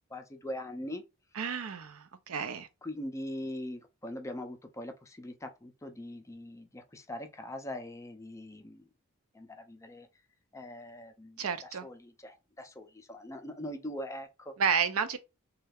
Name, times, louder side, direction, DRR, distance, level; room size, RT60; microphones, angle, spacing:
voice 1, 0.1-1.0 2.8-8.9 9.3-10.1 10.5-14.5, left 1 dB, 15° left, 0.4 m, -42 dB
voice 2, 1.3-2.7 11.4-11.9 14.6-15.2, right 6 dB, 70° right, 0.5 m, -31 dB
3.2 x 2.3 x 3.4 m
head